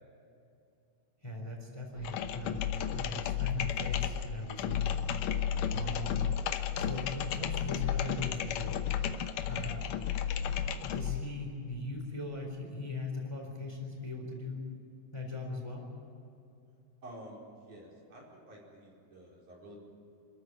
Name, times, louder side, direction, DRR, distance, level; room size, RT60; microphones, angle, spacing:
voice 1, 1.2-2.7 2.9-4.9 5.7-6.2 6.7-8.8 9.5-9.9 10.5-14.7 15.1-15.9, left 2 dB, 10° left, 1 dB, 3.7 m, -40 dB
sound 1, 2.0-11.3, left 9 dB, 80° left, 2.6 m, -33 dB
voice 2, 17.0-19.8, right 1 dB, 70° right, -3 dB, 6.2 m, -50 dB
26.5 x 14.0 x 9.4 m, 2.7 s
omnidirectional pair, 3.7 m